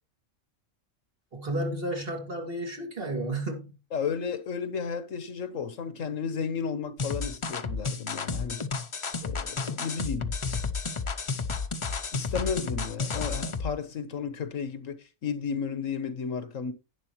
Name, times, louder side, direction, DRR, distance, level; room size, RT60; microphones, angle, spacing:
voice 1, 1.3-3.7, right 1 dB, 45° right, 2.6 m, -32 dB
voice 2, 3.9-8.6 9.2-10.3 12.1-15.0 15.2-16.7, left 6 dB, 75° left, 1.5 m, -33 dB
sound 1, 7.0-13.7, left 4 dB, 40° left, 0.4 m, -32 dB
11.0 x 9.9 x 3.0 m
omnidirectional pair, 1.4 m